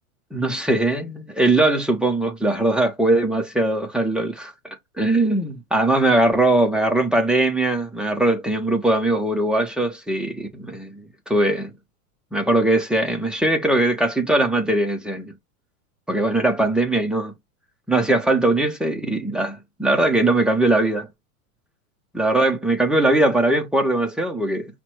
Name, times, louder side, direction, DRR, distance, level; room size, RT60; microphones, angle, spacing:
voice 1, 0.3-4.5 5.0-10.9 11.3-11.7 12.3-15.3 16.1-17.3 17.9-21.1 22.1-24.7, right 2 dB, ahead, 0.3 m, -20 dB
5.6 x 2.1 x 3.0 m
hypercardioid pair, 115°, 45 cm